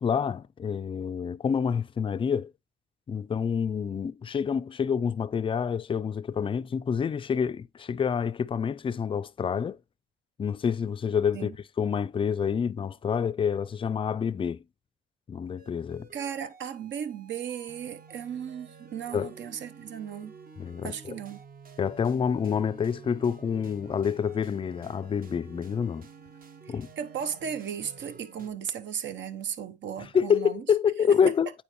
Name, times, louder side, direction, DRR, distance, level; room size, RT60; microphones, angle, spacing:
voice 1, 0.0-2.5 3.1-9.8 10.4-11.5 11.8-14.6 15.3-16.1 19.1-19.3 20.6-21.1 21.8-26.1 26.7-26.9 30.1-31.5, left 7 dB, 25° left, 0.4 m, -27 dB
sound 1, 15.6-28.5, right 5 dB, 45° right, 1.1 m, -50 dB
voice 2, 16.1-20.3 20.8-21.4 26.7-30.7, right 8 dB, 65° right, 0.9 m, -36 dB
8.7 x 4.4 x 3.0 m
cardioid pair, 90°, 20 cm